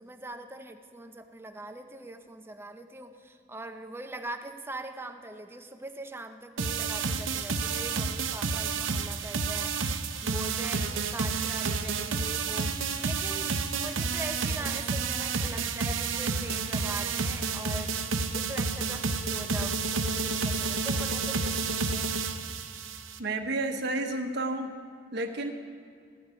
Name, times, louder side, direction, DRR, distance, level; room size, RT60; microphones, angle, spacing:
voice 1, 0.0-9.9 10.2-18.0 18.3-22.1, right 2 dB, 10° right, 6 dB, 0.7 m, -42 dB
sound 1, 6.6-23.2, right 4 dB, 85° right, 0.7 m, -30 dB
voice 2, 23.2-24.7 25.1-25.5, right 2 dB, 60° right, 3 dB, 1.1 m, -31 dB
15.0 x 12.0 x 5.0 m, 2.2 s
head